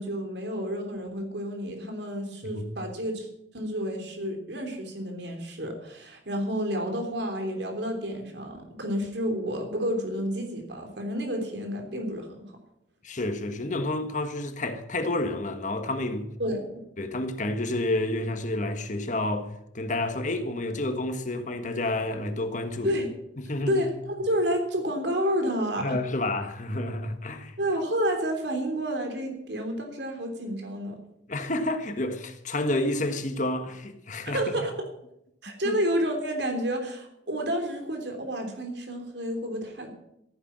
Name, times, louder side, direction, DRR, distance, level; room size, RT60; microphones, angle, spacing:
voice 1, 0.0-3.3 3.5-12.4 16.4-16.6 22.8-23.1 23.7-26.0 27.6-31.0 34.2-34.9 35.4-40.0, equal, 65° right, 3.3 m, -30 dB
voice 2, 13.0-16.3 17.0-23.0 23.4-23.8 25.8-27.6 31.3-34.4 35.6-35.8, left 2 dB, 45° left, 1.5 m, -29 dB
14.5 x 9.7 x 7.5 m
head